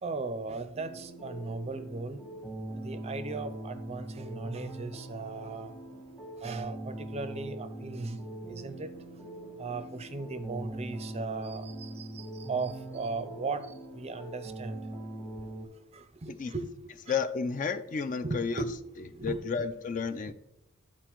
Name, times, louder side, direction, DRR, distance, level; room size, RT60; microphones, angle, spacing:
voice 1, 0.0-2.2 2.8-5.7 6.4-8.2 8.5-8.9 9.6-13.7 13.9-14.8 15.9-17.2 18.2-18.7 19.1-19.4, right 3 dB, 30° right, 10 dB, 0.5 m, -37 dB
sound 1, 0.7-15.7, right 1 dB, 10° left, 1.2 m, -42 dB
voice 2, 17.1-18.6 19.2-20.3, left 5 dB, 35° left, 11 dB, 0.3 m, -32 dB
12.0 x 4.2 x 3.0 m, 0.83 s
head